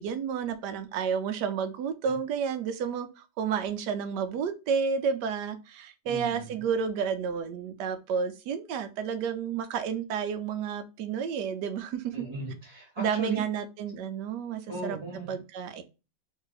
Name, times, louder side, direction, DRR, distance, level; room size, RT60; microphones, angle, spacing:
voice 1, 0.0-12.2 13.0-15.0 15.3-15.8, right 6 dB, 75° right, 1.1 m, -31 dB
voice 2, 6.0-6.5 12.1-13.4 14.7-15.4, right 3 dB, 20° right, 1.3 m, -36 dB
3.1 x 2.7 x 4.0 m
omnidirectional pair, 1.9 m